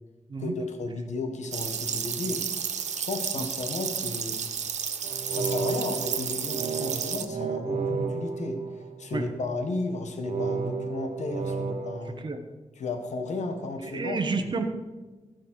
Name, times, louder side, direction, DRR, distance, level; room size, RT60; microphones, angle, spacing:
voice 1, 0.4-2.5 3.0-4.5 5.3-8.6 9.0-12.2 12.8-14.5, left 3 dB, 85° left, 6 dB, 1.5 m, -34 dB
sound 1, 1.5-7.2, right 7 dB, 85° right, 0.8 m, -32 dB
sound 2, 5.0-9.4 10.2-12.0, right 5 dB, 65° right, 1.2 m, -32 dB
voice 2, 13.8-14.6, right 4 dB, 40° right, 6 dB, 1.1 m, -30 dB
14.5 x 5.5 x 6.3 m, 1.2 s
wide cardioid pair, 125°, 12 cm